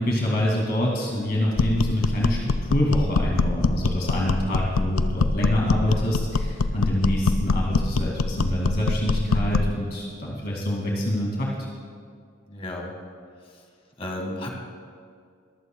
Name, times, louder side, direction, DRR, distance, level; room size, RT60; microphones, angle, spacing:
voice 1, 0.0-11.5, left 1 dB, 50° left, -3 dB, 2.5 m, -26 dB
sound 1, 1.6-9.8, left 3 dB, 85° left, 0.5 m, -24 dB
voice 2, 12.5-12.9 13.4-13.6 14.0-14.5, left 1 dB, 30° left, 1 dB, 1.8 m, -33 dB
22.5 x 15.0 x 2.3 m, 2.2 s
head